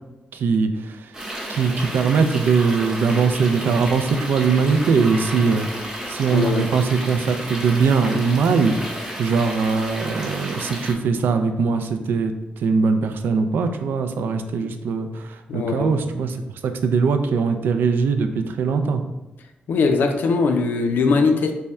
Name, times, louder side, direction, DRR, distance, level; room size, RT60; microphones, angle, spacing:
voice 1, 0.3-0.7 1.5-5.7 6.1-8.8 9.2-12.3 12.6-16.4 16.6-19.0, right 5 dB, 85° right, 7 dB, 0.3 m, -21 dB
sound 1, 1.1-10.9, right 1 dB, 20° right, 0.7 m, -32 dB
voice 2, 6.3-6.7 15.5-16.0 19.7-21.5, left 4 dB, 75° left, 5 dB, 0.4 m, -20 dB
3.5 x 2.2 x 4.1 m, 1.0 s
wide cardioid pair, 140°, 3 cm